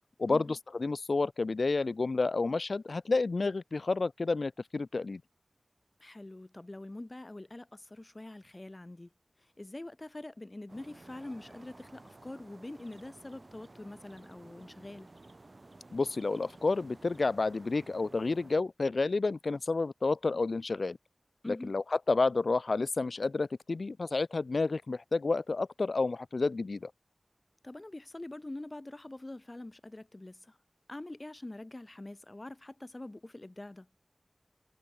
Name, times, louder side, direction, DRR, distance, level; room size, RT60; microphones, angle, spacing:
voice 1, 0.2-5.2 15.9-21.0 21.5-26.9, left 3 dB, 80° left, 0.6 m, -30 dB
voice 2, 6.0-9.1 9.6-15.1 21.4-21.7 27.6-30.6 30.9-33.9, left 2 dB, 40° left, 2.0 m, -44 dB
sound 1, 10.7-18.6, right 2 dB, 55° right, 2.7 m, -54 dB
wide cardioid pair, 45°, 0 cm